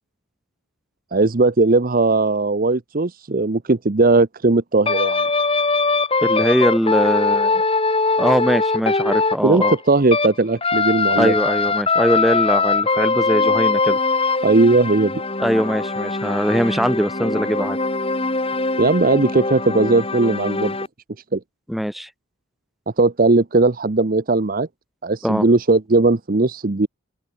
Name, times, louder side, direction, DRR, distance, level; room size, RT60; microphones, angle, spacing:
voice 1, 1.1-5.2 9.4-11.3 14.4-15.2 18.8-20.7 21.3-21.4 23.0-24.7 25.0-26.9, right 3 dB, 40° right, 0.7 m, -18 dB
sound 1, 4.9-10.3 10.6-20.9, left 3 dB, 25° left, 3.2 m, -21 dB
voice 2, 6.2-7.6 8.2-9.7 11.2-14.0 15.4-17.8 21.7-22.1 25.2-25.5, equal, ahead, 3.2 m, -21 dB
open air
head